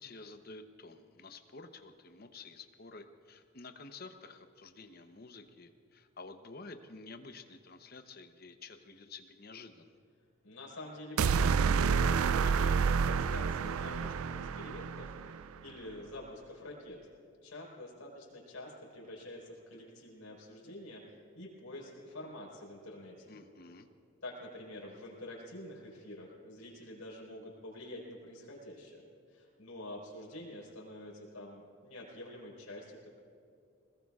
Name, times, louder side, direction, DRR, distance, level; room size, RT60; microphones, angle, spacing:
voice 1, 0.0-9.9 23.3-23.9, left 3 dB, 45° left, 7 dB, 0.8 m, -50 dB
voice 2, 10.4-17.0 17.4-23.3 24.2-33.1, left 1 dB, 85° left, -2 dB, 4.3 m, -47 dB
sound 1, 11.2-15.4, right 6 dB, 90° right, 0.4 m, -29 dB
20.5 x 20.5 x 2.4 m, 2.4 s
head